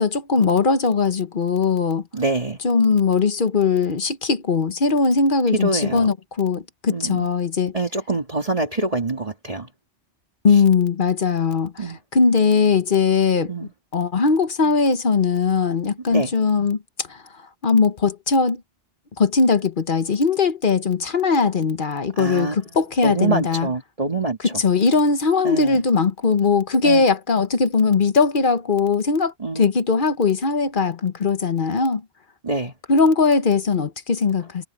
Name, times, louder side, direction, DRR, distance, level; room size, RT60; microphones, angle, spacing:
voice 1, 0.0-2.0 2.6-7.8 10.4-16.8 17.1-17.2 17.6-18.6 19.2-23.7 24.4-32.0 32.9-34.7, left 5 dB, 50° left, 1.2 m, -20 dB
voice 2, 2.1-2.6 5.5-6.1 6.9-7.3 7.7-9.7 11.8-12.0 13.5-13.7 16.1-16.3 22.2-22.6 23.0-24.5 25.4-25.8 26.8-27.1 29.4-29.7 32.4-32.7, right 3 dB, 35° right, 2.3 m, -25 dB
omnidirectional pair, 1.1 m